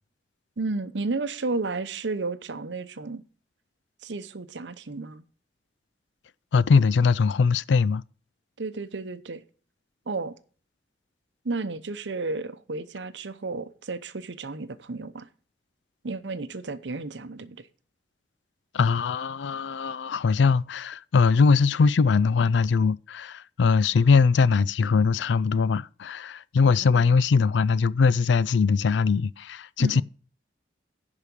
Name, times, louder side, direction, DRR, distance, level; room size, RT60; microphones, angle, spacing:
voice 1, 0.6-3.2 4.0-5.2 8.6-9.4 10.1-10.3 11.4-15.3 16.0-17.7 26.7-27.2 29.8-30.0, right 3 dB, 80° right, 0.8 m, -32 dB
voice 2, 6.5-8.0 18.7-30.0, left 5 dB, 80° left, 0.4 m, -21 dB
10.5 x 4.9 x 6.8 m
head